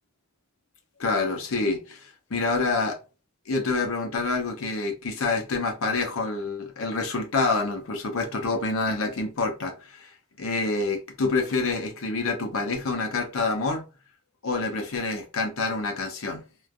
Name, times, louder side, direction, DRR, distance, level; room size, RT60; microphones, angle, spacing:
voice 1, 1.0-3.0 3.5-13.8 14.4-16.4, left 3 dB, 65° left, 0.6 m, -27 dB
3.1 x 2.1 x 2.4 m
head